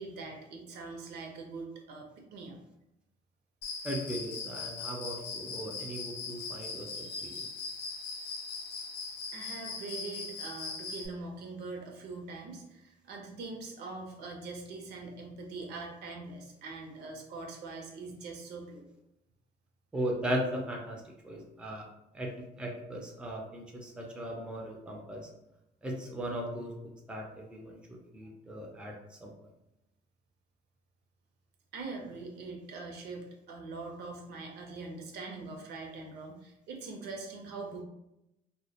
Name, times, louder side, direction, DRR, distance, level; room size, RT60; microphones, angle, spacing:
voice 1, 0.0-2.6 6.9-7.3 9.3-18.8 31.7-37.8, right 3 dB, 75° right, 2 dB, 0.6 m, -43 dB
Cricket, 3.6-11.1, left 4 dB, 80° left, 0.5 m, -40 dB
voice 2, 3.8-7.3 19.9-21.8 22.1-22.3 22.6-25.3 25.8-26.7 27.1-29.3, right 1 dB, 5° right, 0 dB, 0.4 m, -37 dB
2.1 x 2.1 x 2.7 m, 0.87 s
cardioid pair, 110°, 17 cm